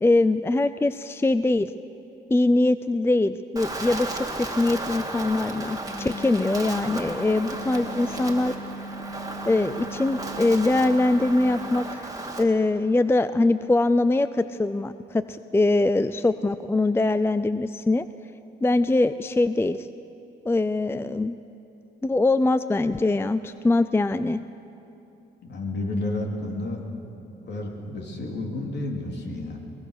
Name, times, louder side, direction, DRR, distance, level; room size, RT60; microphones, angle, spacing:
voice 1, 0.0-1.7 2.3-8.5 9.5-12.1 12.4-18.1 18.6-19.9 20.5-21.4 22.0-24.4, left 2 dB, 10° left, 13 dB, 0.5 m, -22 dB
Wind, 3.6-12.4, right 2 dB, 15° right, 2.4 m, -34 dB
sound 1, 5.9-11.3, right 1 dB, 30° left, 3.2 m, -39 dB
voice 2, 25.4-26.8 27.4-29.6, left 2 dB, 60° left, 1 dB, 3.5 m, -31 dB
22.0 x 21.0 x 6.7 m, 2.9 s
cardioid pair, 90°, 20 cm